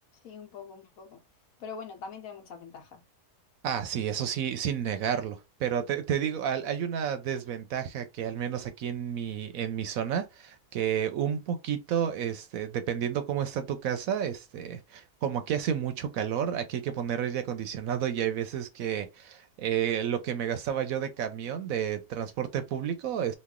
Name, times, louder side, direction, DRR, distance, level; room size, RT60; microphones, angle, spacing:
voice 1, 0.2-1.2 1.6-3.0, left 5 dB, 65° left, 1.2 m, -43 dB
voice 2, 3.6-23.3, right 9 dB, 70° right, 0.9 m, -31 dB
3.1 x 2.4 x 3.5 m
omnidirectional pair, 1.7 m